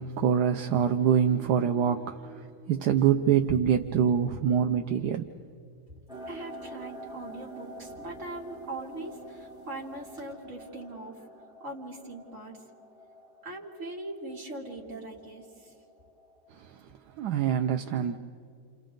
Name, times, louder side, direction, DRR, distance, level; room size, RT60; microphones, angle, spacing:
voice 1, 0.0-5.3 16.5-16.8 17.2-18.2, right 8 dB, 75° right, 1.3 m, -25 dB
sound 1, 6.1-16.8, right 1 dB, ahead, 3.7 m, -47 dB
voice 2, 6.3-11.2 11.6-12.6 13.4-15.4, right 2 dB, 45° right, 3.0 m, -41 dB
29.5 x 28.5 x 3.8 m
omnidirectional pair, 1.8 m